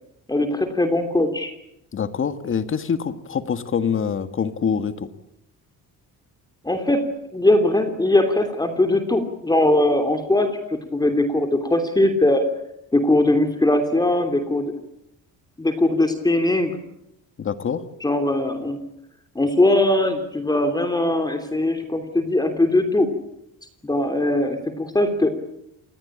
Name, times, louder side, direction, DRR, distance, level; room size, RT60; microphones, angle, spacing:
voice 1, 0.3-1.5 6.6-7.1 7.3-12.5 12.9-14.7 15.6-16.8 18.0-18.8 19.3-23.1 23.8-25.3, left 1 dB, 10° left, 6 dB, 3.1 m, -20 dB
voice 2, 1.9-5.1 17.4-17.8, left 7 dB, 40° left, 11 dB, 1.7 m, -25 dB
28.0 x 19.5 x 8.7 m, 0.80 s
cardioid pair, 130°, 33 cm